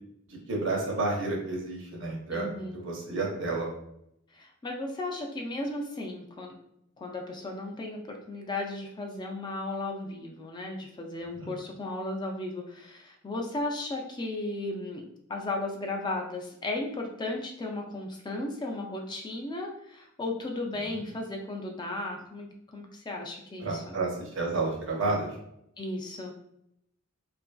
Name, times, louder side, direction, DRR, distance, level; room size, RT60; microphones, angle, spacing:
voice 1, 0.3-2.5 2.7-3.7 11.3-11.5 20.8-21.0 23.6-25.3, right 3 dB, 65° right, -1 dB, 0.8 m, -31 dB
voice 2, 2.3-2.8 4.3-6.5 7.0-15.0 15.3-24.0 25.8-26.3, left 2 dB, 20° left, 1 dB, 0.3 m, -35 dB
2.8 x 2.5 x 2.3 m, 0.77 s
head